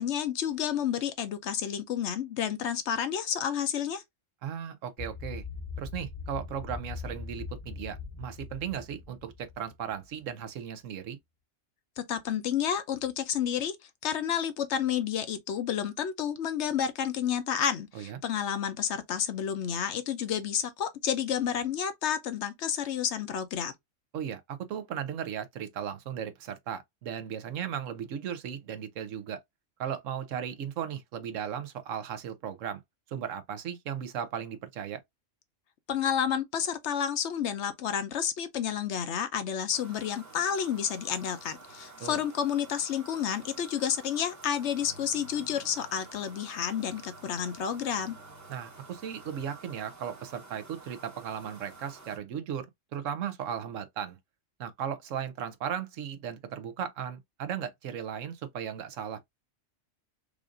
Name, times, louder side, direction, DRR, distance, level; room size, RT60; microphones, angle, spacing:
voice 1, 0.0-4.0 12.0-13.8 14.0-23.7 35.9-48.2, left 8 dB, 65° left, 0.9 m, -30 dB
voice 2, 4.4-5.4 5.8-11.2 17.9-18.2 24.1-29.4 29.8-32.8 33.1-35.0 42.0-42.2 48.5-54.2 54.6-59.2, right 8 dB, 80° right, 1.1 m, -36 dB
sound 1, 5.0-10.1, left 5 dB, 35° left, 0.8 m, -41 dB
sound 2, 39.7-52.2, right 3 dB, 15° right, 0.8 m, -50 dB
4.8 x 2.5 x 2.4 m
omnidirectional pair, 1.3 m